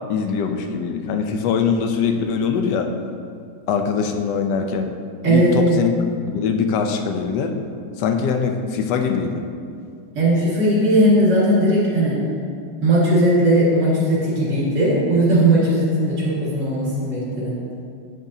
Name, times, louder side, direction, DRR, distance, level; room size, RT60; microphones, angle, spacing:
voice 1, 0.1-2.9 3.7-4.9 5.3-5.9 6.3-7.5 8.0-9.4, left 6 dB, 75° left, 5 dB, 1.2 m, -22 dB
voice 2, 5.2-5.8 10.1-12.2 12.8-17.6, right 1 dB, 45° right, -8 dB, 2.3 m, -18 dB
8.1 x 6.9 x 2.7 m, 2.3 s
omnidirectional pair, 1.9 m